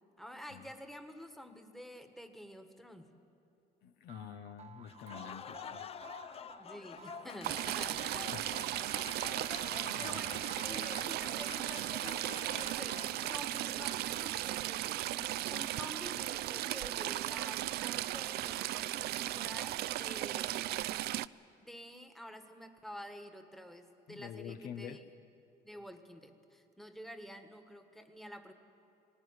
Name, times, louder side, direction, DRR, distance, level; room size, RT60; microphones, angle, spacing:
voice 1, 0.2-3.1 6.6-8.3 10.0-20.7 21.6-25.0 25.6-28.5, equal, ahead, 7 dB, 1.5 m, -49 dB
voice 2, 3.8-5.9 8.3-8.5 8.9-9.4 9.7-10.5 24.1-25.0, left 8 dB, 70° left, 9 dB, 1.0 m, -48 dB
sound 1, 4.1-16.6, right 7 dB, 40° right, 1.2 m, -57 dB
Applause, 4.8-14.2, left 7 dB, 35° left, 0.6 m, -47 dB
Stream / Trickle dribble, 7.4-21.3, right 15 dB, 70° right, 0.4 m, -36 dB
19.0 x 18.5 x 9.7 m, 2.7 s
cardioid pair, 110°, 17 cm